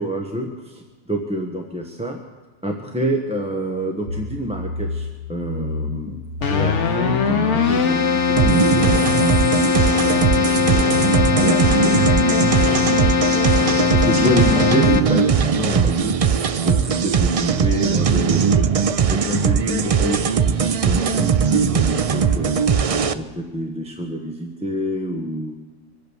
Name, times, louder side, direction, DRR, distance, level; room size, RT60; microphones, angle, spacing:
voice 1, 0.0-2.2 2.6-6.2 6.5-9.3 9.9-13.1 13.4-16.2 16.6-18.7 19.1-22.6 23.1-25.7, equal, 5° right, 1 dB, 1.0 m, -27 dB
sound 1, 4.1-15.9, left 3 dB, 90° right, 1.2 m, -33 dB
Keyboard (musical), 6.4-15.4, left 6 dB, 75° left, 1.4 m, -20 dB
sound 2, 8.4-23.1, right 6 dB, 50° right, 0.4 m, -19 dB
23.5 x 8.7 x 6.9 m, 1.3 s
omnidirectional pair, 1.2 m